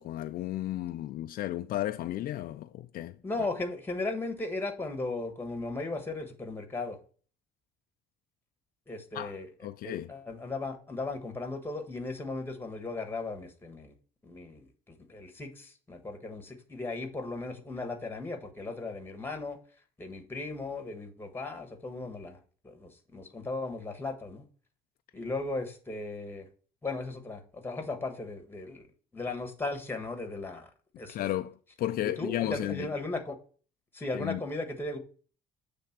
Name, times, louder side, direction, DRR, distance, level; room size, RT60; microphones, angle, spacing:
voice 1, 0.0-3.2 9.1-9.4 9.6-10.1 31.1-32.9 34.1-34.4, left 14 dB, 60° left, 0.4 m, -33 dB
voice 2, 3.2-7.0 8.9-9.5 9.8-13.9 14.2-19.6 20.0-22.4 22.6-24.4 25.1-26.5 26.8-28.8 29.1-30.7 31.0-31.2 32.0-33.4 33.9-35.0, left 3 dB, 10° left, 1.4 m, -36 dB
7.3 x 3.5 x 5.9 m
cardioid pair, 110°, 17 cm